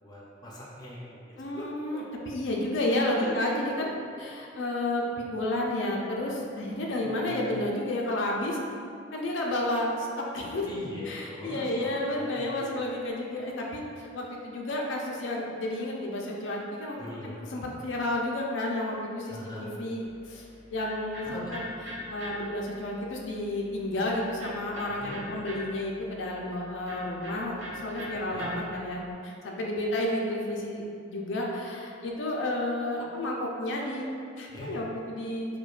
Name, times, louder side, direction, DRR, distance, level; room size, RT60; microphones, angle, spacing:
voice 1, 0.0-1.6 3.1-3.3 3.8-3.9 7.0-7.5 10.6-12.7 17.0-17.4 19.3-19.7 21.3-21.5 24.9-25.2 28.3-28.5 34.5-34.7, left 1 dB, 20° left, -5 dB, 0.6 m, -42 dB
voice 2, 1.4-5.0 5.3-8.6 9.1-10.6 11.1-17.0 17.2-34.0 34.4-35.5, left 1 dB, 90° left, -2 dB, 0.4 m, -31 dB
Electric guitar, 20.0-29.1, left 1 dB, 75° right, 0.8 m, -43 dB
4.9 x 2.2 x 2.4 m, 2.5 s
head